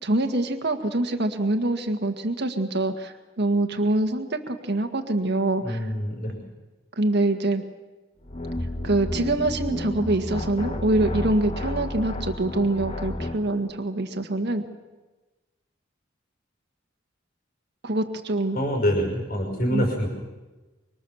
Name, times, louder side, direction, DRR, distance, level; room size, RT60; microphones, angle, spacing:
voice 1, 0.0-5.8 6.9-7.6 8.8-14.6 17.8-18.6 19.7-19.9, right 2 dB, 60° right, 4 dB, 1.8 m, -25 dB
voice 2, 5.6-6.4 18.5-20.1, equal, 50° left, 2 dB, 5.5 m, -26 dB
sound 1, 8.2-13.5, left 1 dB, 30° left, 1.7 m, -31 dB
25.5 x 24.5 x 7.2 m, 1.2 s
head